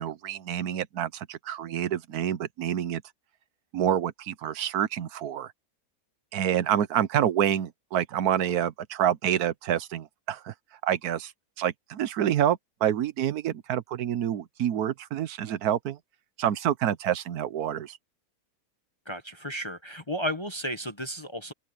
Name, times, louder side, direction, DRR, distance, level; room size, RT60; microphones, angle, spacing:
voice 1, 0.0-3.0 3.7-5.5 6.3-10.5 10.8-11.3 11.6-16.0 16.4-18.0, right 10 dB, 75° right, 1.3 m, -27 dB
voice 2, 19.1-21.5, equal, 20° left, 0.9 m, -33 dB
open air
omnidirectional pair, 1.6 m